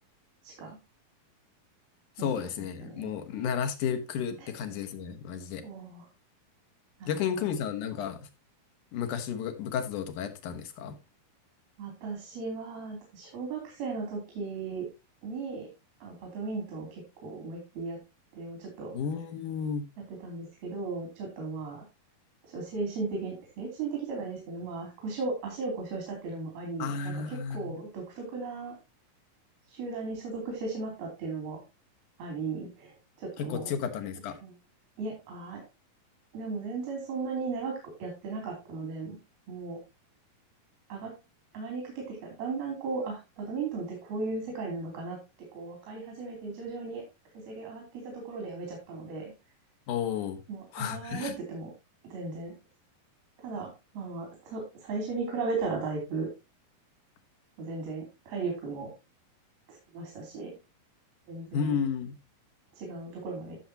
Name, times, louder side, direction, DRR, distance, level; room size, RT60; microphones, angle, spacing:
voice 1, 0.4-0.8 2.2-2.3 2.8-3.1 4.4-4.5 5.6-6.1 7.0-7.5 11.8-14.9 15.2-15.7 16.0-18.0 18.3-19.0 20.1-21.8 22.5-28.8 29.7-31.6 32.2-33.7 34.4-34.5 35.0-35.6 36.3-37.7 38.0-39.2 39.5-39.8 40.9-41.1 41.5-45.2 45.5-47.0 47.5-49.3 50.5-51.7 52.0-52.5 53.4-56.3 57.6-58.9 59.7-60.5 61.3-61.7 62.7-63.6, right 4 dB, 85° right, 4.9 m, -36 dB
voice 2, 2.2-5.6 7.1-8.2 8.9-11.0 18.9-19.8 26.8-27.8 33.4-34.4 49.9-50.4 50.7-51.3 61.5-62.1, left 7 dB, 65° left, 2.5 m, -32 dB
14.5 x 7.0 x 2.8 m
omnidirectional pair, 4.2 m